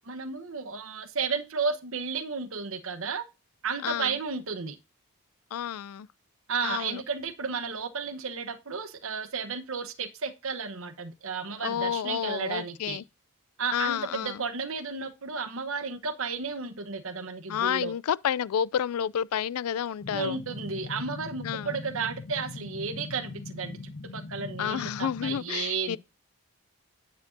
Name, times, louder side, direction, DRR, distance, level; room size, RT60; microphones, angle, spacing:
voice 1, 0.1-3.2 3.6-4.8 6.5-13.0 13.6-17.9 20.1-26.0, right 5 dB, 65° right, 1.0 m, -33 dB
voice 2, 5.5-6.1 6.6-7.0 11.6-13.0 13.7-14.4 17.5-20.4 21.4-21.8 24.6-26.0, left 9 dB, 80° left, 0.4 m, -30 dB
sound 1, 20.0-25.4, left 3 dB, 60° left, 0.8 m, -41 dB
9.7 x 7.8 x 2.6 m
head